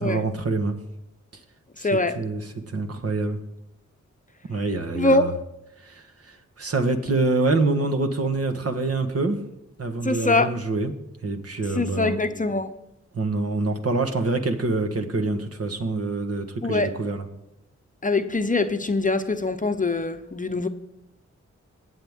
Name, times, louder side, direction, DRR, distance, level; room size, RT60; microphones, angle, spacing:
voice 1, 0.0-0.8 1.8-3.4 4.5-5.3 5.8-9.4 9.8-10.9 11.2-12.2 13.1-17.2, right 3 dB, 55° right, 6 dB, 1.4 m, -26 dB
voice 2, 1.8-2.2 5.0-5.3 10.0-10.5 11.8-12.7 16.6-16.9 18.0-20.7, left 2 dB, 25° left, 8 dB, 0.8 m, -23 dB
19.5 x 7.8 x 3.6 m, 0.88 s
cardioid pair, 70°, 29 cm